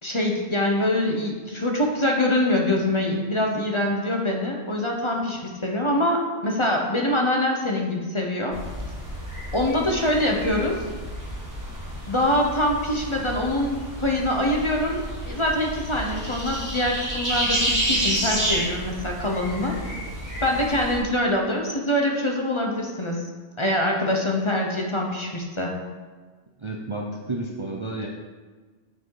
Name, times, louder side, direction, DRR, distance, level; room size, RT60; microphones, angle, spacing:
voice 1, 0.0-8.6 9.5-10.8 12.1-15.0 15.3-19.7 20.4-23.2 23.6-25.7, left 1 dB, 25° left, 0 dB, 1.0 m, -24 dB
sound 1, 8.5-21.0, equal, 15° right, 2.6 m, -30 dB
voice 2, 26.6-28.1, right 2 dB, 30° right, -1 dB, 0.6 m, -31 dB
7.3 x 6.1 x 4.8 m, 1.4 s
omnidirectional pair, 1.2 m